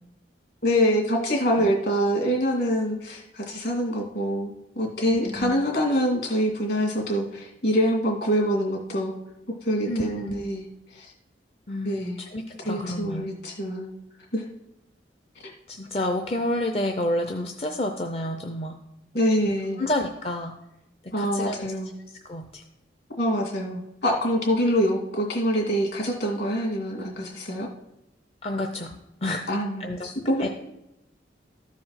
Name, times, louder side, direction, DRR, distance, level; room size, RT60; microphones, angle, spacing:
voice 1, 0.6-4.5 4.8-9.1 9.6-10.6 10.9-11.1 11.8-12.2 12.6-13.9 14.3-14.4 15.4-15.5 19.1-19.8 21.1-21.9 23.2-27.7 29.5-30.5, equal, 60° left, 0 dB, 2.3 m, -25 dB
voice 2, 5.1-5.6 9.9-10.5 11.7-13.3 15.7-18.8 19.4-20.5 21.2-21.7 22.1-22.6 28.4-29.0 29.2-29.5 29.8-30.1 30.4-30.5, left 1 dB, 30° left, 5 dB, 0.5 m, -30 dB
13.5 x 4.9 x 5.7 m, 0.90 s
head